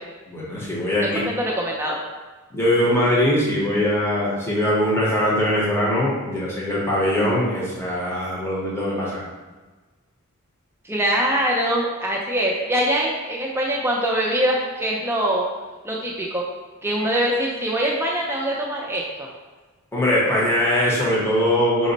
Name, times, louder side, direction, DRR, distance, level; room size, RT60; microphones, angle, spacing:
voice 1, 0.3-1.2 2.5-9.2 19.9-21.9, left 1 dB, 10° left, -6 dB, 0.7 m, -21 dB
voice 2, 1.2-2.0 10.8-15.5 15.8-16.5 16.8-19.3, right 1 dB, 10° right, -2 dB, 0.4 m, -23 dB
5.1 x 2.0 x 3.9 m, 1.3 s
head